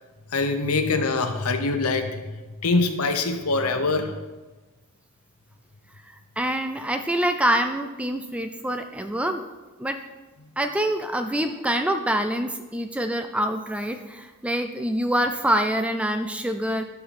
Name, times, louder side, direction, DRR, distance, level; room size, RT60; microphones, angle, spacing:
voice 1, 0.3-2.2 2.6-4.2, left 3 dB, 80° left, 8 dB, 0.8 m, -24 dB
voice 2, 6.4-9.4 9.8-10.0 10.6-16.8, right 1 dB, 5° right, 7 dB, 0.3 m, -25 dB
11.5 x 4.8 x 4.2 m, 1.2 s
head